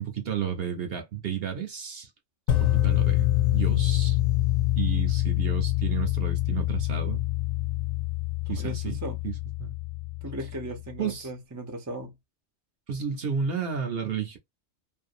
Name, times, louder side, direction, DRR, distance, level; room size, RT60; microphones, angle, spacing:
voice 1, 0.0-2.1 2.6-4.2 4.8-7.2 8.5-9.3 9.6-9.7 11.0-11.3 12.9-14.4, right 7 dB, 55° right, 0.8 m, -32 dB
sound 1, 2.5-10.6, left 15 dB, 85° left, 1.0 m, -26 dB
voice 2, 8.5-9.2 10.2-12.2, right 1 dB, 25° right, 0.4 m, -37 dB
2.6 x 2.1 x 2.5 m
omnidirectional pair, 1.4 m